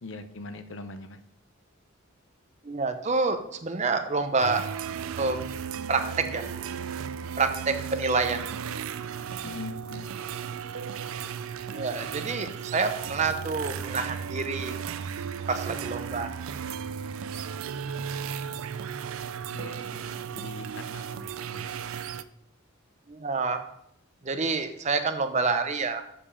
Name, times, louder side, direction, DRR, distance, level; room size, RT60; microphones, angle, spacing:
voice 1, 0.0-1.2 9.4-10.1 19.5-21.7, left 3 dB, 60° left, 9 dB, 0.7 m, -42 dB
voice 2, 2.6-4.6 5.2-5.4 5.9-6.5 7.4-8.5 11.7-14.8 15.5-16.3 23.1-23.6 24.2-26.0, right 4 dB, 35° right, 8 dB, 0.6 m, -28 dB
sound 1, 4.4-22.2, right 7 dB, 80° right, 0.4 m, -35 dB
7.0 x 5.3 x 5.0 m, 0.75 s
head